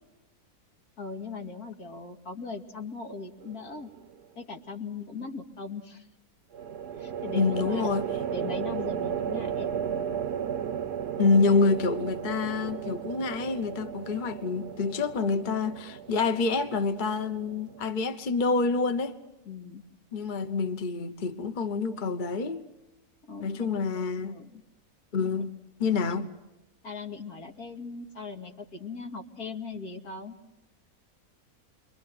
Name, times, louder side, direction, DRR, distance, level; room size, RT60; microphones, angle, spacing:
voice 1, 1.0-3.9 4.4-6.1 7.0-7.9 8.3-9.7 19.5-19.8 23.3-23.7 24.3-24.6 26.8-30.4, left 4 dB, 75° left, 2.9 m, -39 dB
sound 1, 3.4-4.0 6.5-17.9, right 8 dB, 90° right, 1.7 m, -34 dB
voice 2, 7.3-8.1 11.2-19.2 20.1-22.6 23.4-24.3 25.1-25.5 25.8-26.3, left 4 dB, 35° left, 1.2 m, -27 dB
29.0 x 23.5 x 7.8 m
omnidirectional pair, 1.6 m